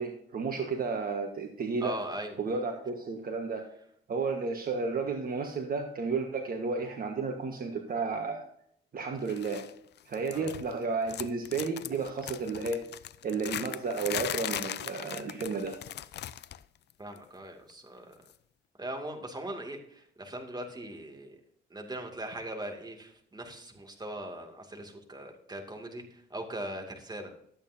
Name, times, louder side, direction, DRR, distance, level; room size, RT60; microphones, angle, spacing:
voice 1, 0.0-2.0 2.4-3.7 4.1-8.4 8.9-9.6 10.1-12.8 13.2-15.8, right 4 dB, 45° right, 3 dB, 1.5 m, -32 dB
voice 2, 1.8-2.4 10.3-10.5 17.0-18.2 18.8-21.4 21.7-27.3, right 1 dB, 20° right, 3 dB, 2.5 m, -40 dB
sound 1, 9.3-9.7 10.0-10.8 11.1-16.6 16.9-17.2 18.3-18.4, left 11 dB, 60° left, 0.5 m, -39 dB
12.5 x 8.7 x 2.8 m, 0.67 s
cardioid pair, 90°, 20 cm